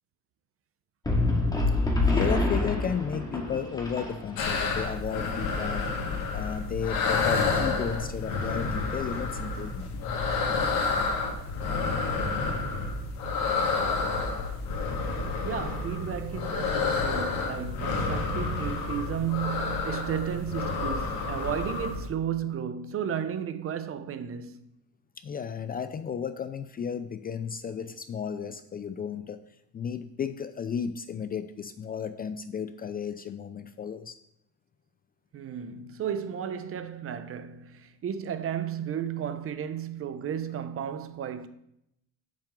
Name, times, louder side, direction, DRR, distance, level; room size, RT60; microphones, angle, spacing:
sound 1, 1.1-4.6, left 2 dB, 10° left, 2.0 m, -26 dB
voice 1, 2.1-5.9 6.3-9.9 25.2-29.4 29.7-34.2, left 7 dB, 30° left, 0.4 m, -33 dB
sound 2, 4.4-22.1, left 4 dB, 75° left, 1.7 m, -29 dB
voice 2, 15.4-24.7 35.3-41.5, right 9 dB, 40° right, 0.7 m, -33 dB
8.8 x 7.4 x 3.7 m
cardioid pair, 110°, 33 cm